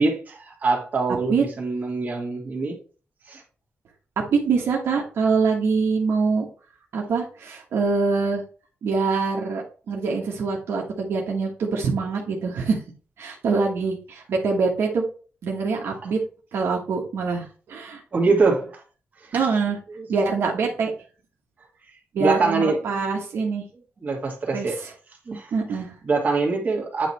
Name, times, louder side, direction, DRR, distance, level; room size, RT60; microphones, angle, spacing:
voice 1, 0.0-2.8 3.3-3.4 18.1-18.7 19.9-20.1 22.2-22.9 24.0-24.9 25.3-25.5 26.0-27.1, right 3 dB, 40° right, 2.1 m, -23 dB
voice 2, 4.3-6.5 6.9-8.4 8.8-12.8 13.2-15.0 15.4-16.2 16.5-18.0 19.3-19.8 20.1-20.9 22.1-23.7 24.5-24.7 25.5-25.9, right 4 dB, 80° right, 1.3 m, -24 dB
9.0 x 3.1 x 4.2 m
wide cardioid pair, 135°, 4 cm